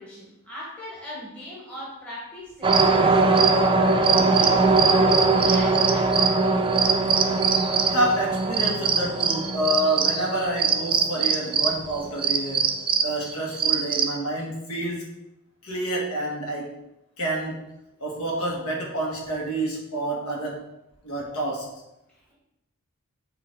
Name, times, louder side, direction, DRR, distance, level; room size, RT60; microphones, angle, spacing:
voice 1, 0.0-5.1 5.3-6.6 22.1-22.3, left 1 dB, 5° left, -6 dB, 1.2 m, -40 dB
sound 1, 2.6-14.2, right 4 dB, 25° right, 0.4 m, -21 dB
voice 2, 7.9-15.1 15.6-16.7 17.2-17.7 18.0-20.7 21.0-21.7, right 1 dB, 85° left, -2 dB, 1.7 m, -28 dB
7.1 x 3.1 x 4.5 m, 0.90 s
head